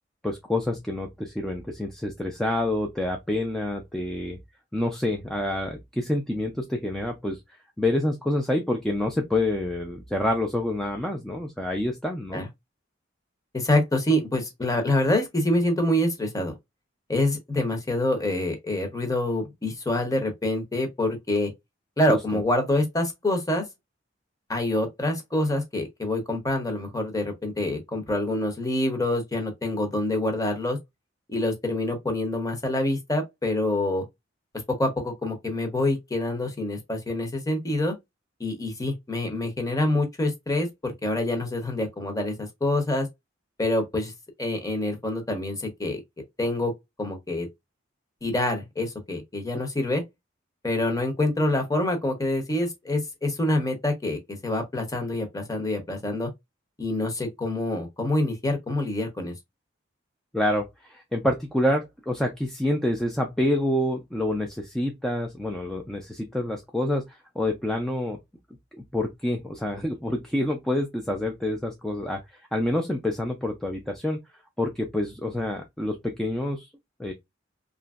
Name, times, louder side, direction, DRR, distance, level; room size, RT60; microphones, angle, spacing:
voice 1, 0.2-4.4 4.7-7.4 7.8-12.4 22.1-22.4 60.3-67.0 67.4-68.2 68.9-72.2 72.5-74.2 74.6-76.7 77.0-77.1, left 1 dB, 5° left, 0.3 m, -27 dB
voice 2, 13.5-16.5 17.1-21.5 22.0-23.6 24.5-30.8 31.3-34.0 34.8-37.9 38.4-43.1 43.6-44.1 44.4-46.0 46.4-46.7 47.0-47.5 48.2-50.0 50.6-56.3 56.8-59.3, left 1 dB, 20° left, 0.7 m, -26 dB
2.9 x 2.5 x 2.3 m
head